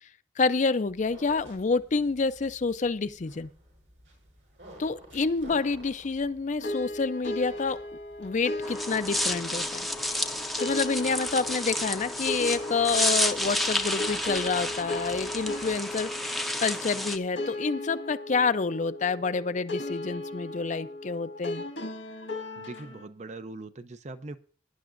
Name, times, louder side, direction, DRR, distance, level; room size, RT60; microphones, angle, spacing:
voice 1, 0.4-3.5 4.8-7.8 8.2-9.9 10.6-21.6, left 4 dB, 40° left, 12 dB, 0.5 m, -28 dB
sound 1, 0.8-16.1, equal, 75° right, 6.9 m, -53 dB
sound 2, 6.6-23.1, left 2 dB, 85° left, 1.7 m, -37 dB
sound 3, 8.6-17.2, left 1 dB, ahead, 0.6 m, -31 dB
voice 2, 22.6-24.4, right 2 dB, 40° right, 11 dB, 0.6 m, -41 dB
17.5 x 10.0 x 2.5 m, 0.42 s
head